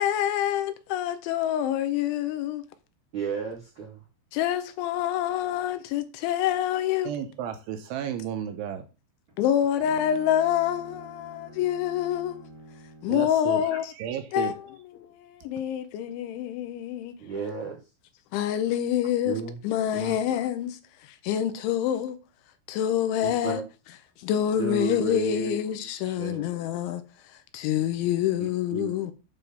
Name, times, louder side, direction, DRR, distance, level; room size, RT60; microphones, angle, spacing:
voice 1, 0.0-2.6 4.3-7.1 9.4-12.5 13.0-13.9 14.3-14.6 14.9-17.1 18.3-19.4 19.6-20.8 21.2-22.2 22.7-23.6 24.2-27.0 27.5-29.1, left 11 dB, 75° left, 3.1 m, -26 dB
voice 2, 3.1-4.0 17.2-17.8 19.2-19.6 19.9-20.2 23.2-23.6 24.6-25.7 26.1-26.4 28.4-29.0, right 6 dB, 55° right, 2.1 m, -33 dB
voice 3, 7.0-8.9 13.1-13.7 14.0-14.5, right 9 dB, 80° right, 3.1 m, -33 dB
Bowed string instrument, 9.3-13.4, right 1 dB, 25° right, 2.6 m, -48 dB
9.1 x 3.8 x 6.9 m
omnidirectional pair, 5.8 m